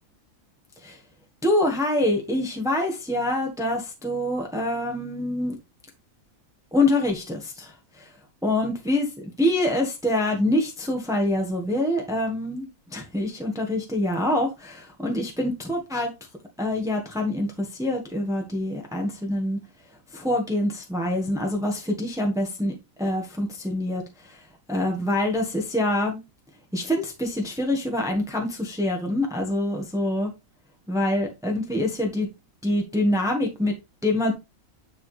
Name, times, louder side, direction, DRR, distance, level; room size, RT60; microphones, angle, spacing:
voice 1, 1.4-5.6 6.7-8.1 8.4-9.1 9.4-16.1 16.6-19.6 20.1-24.4 24.7-26.2 26.7-30.3 30.9-32.3 32.6-33.7 34.0-34.3, left 1 dB, ahead, 1.5 m, -25 dB
9.8 x 4.8 x 3.3 m
omnidirectional pair, 1.5 m